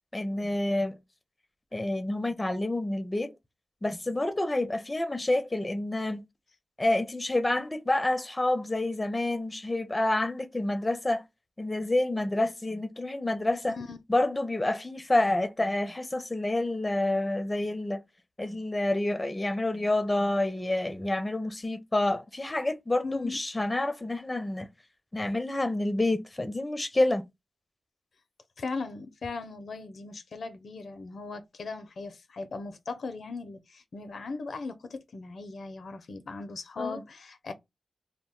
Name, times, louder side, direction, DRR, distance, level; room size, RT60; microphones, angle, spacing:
voice 1, 0.1-1.0 1.7-3.3 3.8-6.2 6.8-11.2 11.6-13.8 14.1-18.0 18.4-24.7 25.1-27.2 36.8-37.0, left 1 dB, 25° left, 0.5 m, -28 dB
voice 2, 23.0-23.4 28.6-37.5, left 3 dB, 75° left, 0.5 m, -38 dB
2.2 x 2.1 x 3.7 m
cardioid pair, 40°, 0 cm